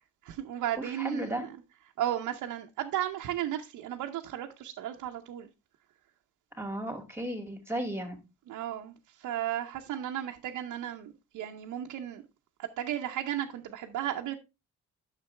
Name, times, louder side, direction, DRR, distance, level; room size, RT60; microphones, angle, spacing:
voice 1, 0.2-1.6 2.0-5.5 8.5-12.2 12.6-14.4, right 11 dB, 80° right, 0.9 m, -34 dB
voice 2, 0.8-1.4 6.6-8.2, right 1 dB, 10° right, 2.5 m, -34 dB
9.6 x 6.8 x 3.3 m
cardioid pair, 90°, 30 cm